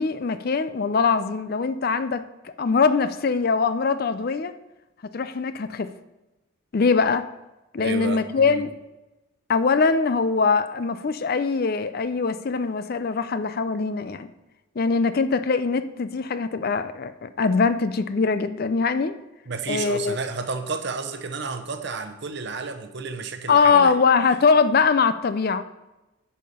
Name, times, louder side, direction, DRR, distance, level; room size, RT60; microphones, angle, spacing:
voice 1, 0.0-4.6 5.1-5.9 6.7-7.3 7.7-8.7 9.5-14.3 14.8-19.2 19.7-20.2 23.5-25.6, left 5 dB, 45° left, 12 dB, 0.4 m, -22 dB
voice 2, 7.8-8.6 19.5-23.9, right 4 dB, 55° right, 7 dB, 0.8 m, -31 dB
11.0 x 5.6 x 5.0 m, 1.0 s
head